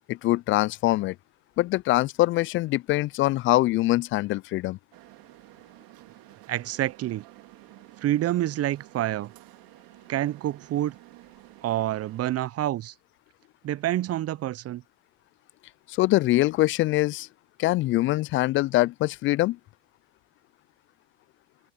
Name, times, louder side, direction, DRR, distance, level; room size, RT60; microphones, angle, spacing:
voice 1, 0.1-1.2 1.6-4.8 15.9-17.3 17.6-19.6, left 17 dB, 30° left, 0.4 m, -23 dB
sound 1, 4.9-12.4, right 21 dB, 55° right, 2.8 m, -51 dB
voice 2, 6.5-7.3 8.0-9.3 10.1-10.9 11.6-12.9 13.6-14.8, right 13 dB, 35° right, 0.8 m, -27 dB
hypercardioid pair, 80°, 41 cm